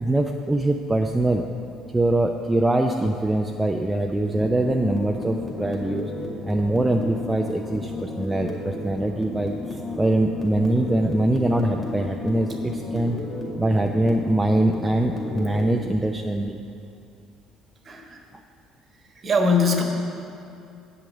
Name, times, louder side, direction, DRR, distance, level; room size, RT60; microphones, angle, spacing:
voice 1, 0.0-1.4 1.9-6.1 6.4-13.2 13.6-16.6, right 1 dB, 10° right, 2 dB, 0.5 m, -23 dB
sound 1, 4.2-15.8, left 2 dB, 15° left, 2.1 m, -33 dB
voice 2, 17.8-18.2 19.1-19.8, left 2 dB, 35° right, 3 dB, 1.2 m, -21 dB
8.2 x 6.0 x 7.6 m, 2.6 s
figure-of-eight pair, 55°, 0 cm